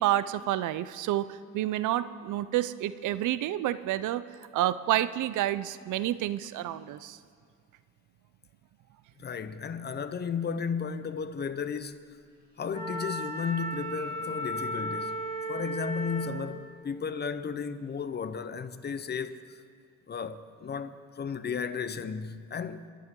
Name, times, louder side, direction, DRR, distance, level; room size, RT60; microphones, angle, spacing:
voice 1, 0.0-4.3 4.5-7.2, right 13 dB, 80° right, 0.6 m, -29 dB
voice 2, 9.2-12.0 12.6-15.2 15.5-19.6 20.1-22.9, left 6 dB, 35° left, 0.8 m, -34 dB
Wind instrument woodwind instrument, 12.7-16.4, right 1 dB, 25° right, 3.3 m, -35 dB
29.5 x 11.0 x 3.8 m
cardioid pair, 90°, 30 cm